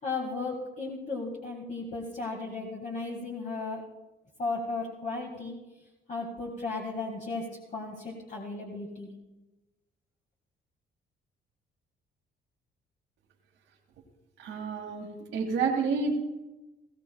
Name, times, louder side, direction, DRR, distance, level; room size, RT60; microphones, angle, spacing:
voice 1, 0.0-3.8 4.4-5.6 6.1-9.1, left 3 dB, 40° left, -1 dB, 1.9 m, -35 dB
voice 2, 14.4-16.1, right 5 dB, 80° right, -4 dB, 2.0 m, -29 dB
18.5 x 15.5 x 2.3 m, 1.1 s
cardioid pair, 90°, 20 cm